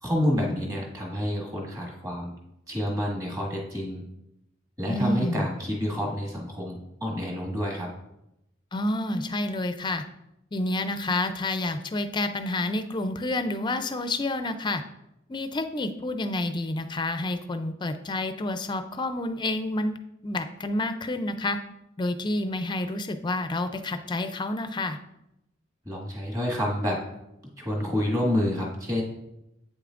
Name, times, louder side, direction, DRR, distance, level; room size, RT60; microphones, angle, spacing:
voice 1, 0.0-2.4 2.7-4.0 4.8-7.9 25.9-27.0 27.6-29.0, left 1 dB, 20° right, -1 dB, 1.8 m, -28 dB
voice 2, 4.9-5.5 8.7-10.0 10.5-14.8 15.3-20.0 20.2-21.6 22.0-25.0, left 2 dB, 25° left, 9 dB, 0.4 m, -29 dB
8.5 x 6.7 x 2.5 m, 0.85 s
head